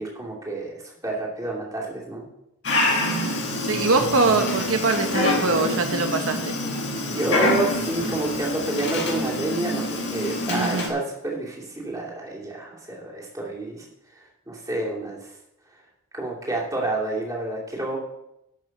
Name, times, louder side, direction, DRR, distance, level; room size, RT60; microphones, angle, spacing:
voice 1, 0.0-2.2 7.0-13.8 14.5-15.3 16.1-18.0, right 2 dB, 15° right, -4 dB, 2.7 m, -29 dB
Dog, 2.6-10.9, left 2 dB, 50° left, 2.1 m, -26 dB
voice 2, 3.0-3.3 3.6-6.5 10.5-10.9, right 3 dB, 70° right, 5 dB, 1.0 m, -23 dB
12.0 x 6.0 x 6.6 m, 0.84 s
head